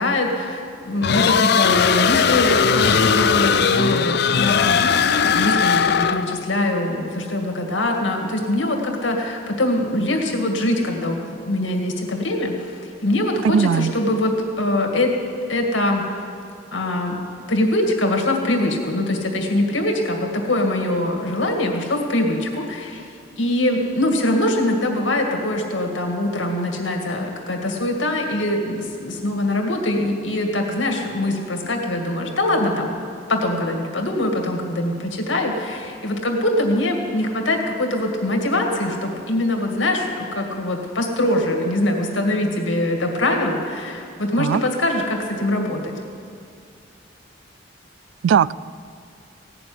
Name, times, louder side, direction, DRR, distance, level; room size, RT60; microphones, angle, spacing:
voice 1, 0.0-15.1 15.5-16.0 16.7-17.2 17.5-23.1 23.4-32.9 33.3-45.9, left 1 dB, 90° left, 2 dB, 2.2 m, -23 dB
sound 1, 1.0-6.4, left 6 dB, 60° left, 0.5 m, -18 dB
voice 2, 13.4-13.9 44.4-44.6 48.2-48.5, right 7 dB, 90° right, 20 dB, 0.3 m, -18 dB
16.5 x 7.0 x 9.6 m, 2.3 s
head